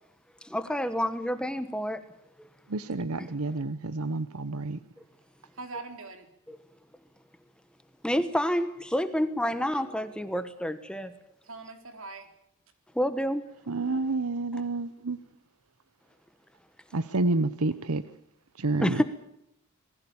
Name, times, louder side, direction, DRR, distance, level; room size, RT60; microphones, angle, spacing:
voice 1, 0.4-2.0 2.4-2.5 3.2-3.3 8.0-11.1 12.9-13.4 13.9-14.0 18.8-19.0, equal, 5° left, 11 dB, 1.1 m, -28 dB
voice 2, 2.7-4.8 13.7-15.2 16.9-18.0 18.6-19.0, right 3 dB, 80° right, 14 dB, 0.9 m, -29 dB
voice 3, 5.5-6.3 9.7-9.8 11.4-12.3 18.9-19.0, right 3 dB, 65° right, 7 dB, 3.8 m, -42 dB
27.5 x 20.0 x 7.1 m, 0.78 s
head